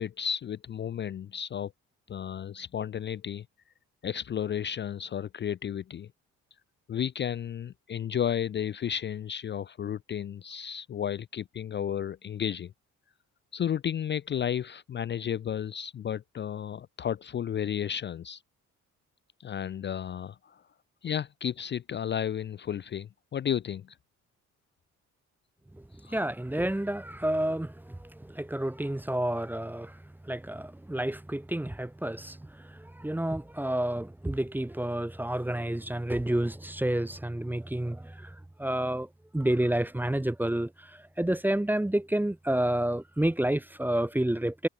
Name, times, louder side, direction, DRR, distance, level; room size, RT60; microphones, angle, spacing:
voice 1, 0.0-1.7 2.1-3.5 4.0-6.1 6.9-12.7 13.5-18.4 19.4-20.6 21.0-23.9 26.0-26.2, left 9 dB, 35° left, 0.5 m, -33 dB
voice 2, 25.8-44.7, right 1 dB, 5° right, 0.7 m, -30 dB
cardioid pair, 90°, 30 cm